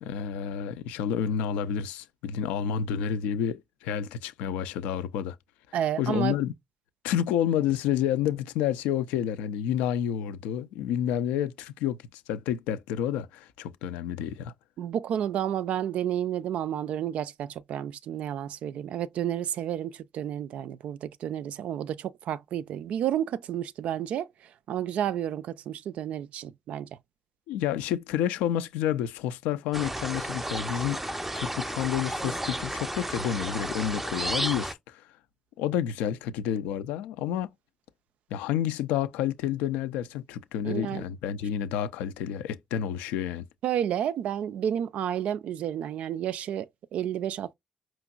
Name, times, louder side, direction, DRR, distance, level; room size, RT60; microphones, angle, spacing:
voice 1, 0.0-5.4 6.0-6.5 7.0-14.5 27.5-35.0 35.6-37.5 38.3-43.4, left 9 dB, 80° left, 0.3 m, -29 dB
voice 2, 5.7-6.4 14.8-26.9 40.6-41.0 43.6-47.5, right 10 dB, 70° right, 0.3 m, -31 dB
sound 1, 29.7-34.7, right 1 dB, 10° right, 0.6 m, -32 dB
5.0 x 2.9 x 2.3 m
hypercardioid pair, 40°, 2 cm